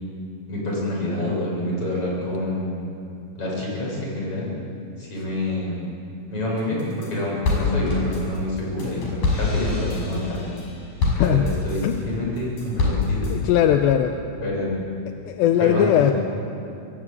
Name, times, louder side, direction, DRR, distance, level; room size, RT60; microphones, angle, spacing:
voice 1, 0.5-2.7 3.4-4.5 5.0-5.8 6.3-10.4 11.2-13.4 14.4-14.8 15.6-16.1, left 1 dB, 30° left, -4 dB, 8.4 m, -27 dB
sound 1, 6.6-7.1 7.4-12.0 12.4-13.3, left 3 dB, 50° left, 7.3 m, -25 dB
voice 2, 11.2-11.5 11.8-12.0 13.3-14.2 15.2-16.1, left 10 dB, 75° left, 6 dB, 2.7 m, -19 dB
25.0 x 22.5 x 8.5 m, 2.6 s
omnidirectional pair, 5.6 m